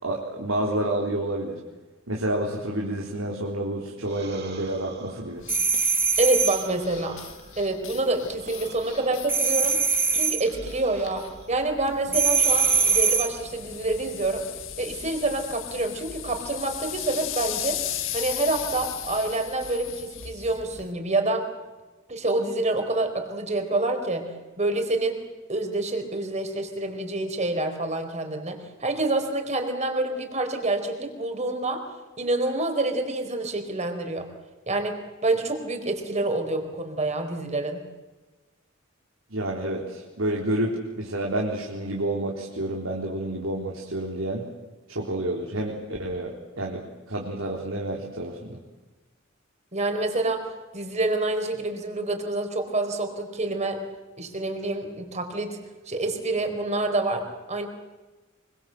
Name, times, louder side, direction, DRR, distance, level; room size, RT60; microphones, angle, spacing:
voice 1, 0.0-1.6 2.1-5.4 39.3-44.4 44.9-46.8 47.1-48.6, right 1 dB, 85° right, -2 dB, 4.0 m, -29 dB
sound 1, 4.0-7.7 8.3-11.6 12.2-13.7, right 3 dB, 55° right, 7.4 m, -45 dB
sound 2, 5.4-20.9, left 10 dB, 70° left, 1.9 m, -37 dB
sound 3, 5.5-6.7 9.3-10.5 12.1-13.4, right 5 dB, 10° right, 1.1 m, -22 dB
voice 2, 6.2-7.2 7.6-9.8 10.1-14.5 14.8-17.8 18.1-21.5 22.1-24.3 24.6-25.2 25.5-31.8 32.2-34.3 34.7-37.8 49.7-53.8 54.2-55.6 55.9-57.7, right 2 dB, 35° right, 5 dB, 4.4 m, -27 dB
25.5 x 24.5 x 7.9 m, 1.2 s
head